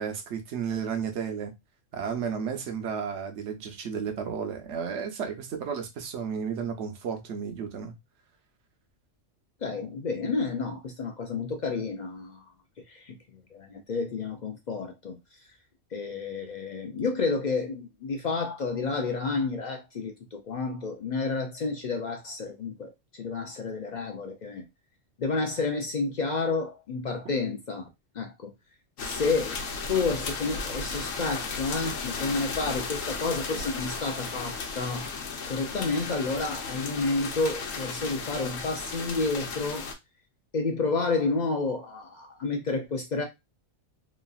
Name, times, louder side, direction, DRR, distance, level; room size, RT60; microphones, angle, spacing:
voice 1, 0.0-1.5 1.9-7.9, right 7 dB, 65° right, 0.9 m, -33 dB
voice 2, 9.6-12.5 12.9-15.2 15.9-24.6 25.2-27.9 28.1-28.5 29.0-29.6 29.9-35.1 35.5-39.8 40.5-43.2, left 3 dB, 60° left, 0.4 m, -30 dB
sound 1, 29.0-39.9, left 4 dB, 85° left, 1.1 m, -35 dB
3.1 x 2.4 x 2.3 m
omnidirectional pair, 1.3 m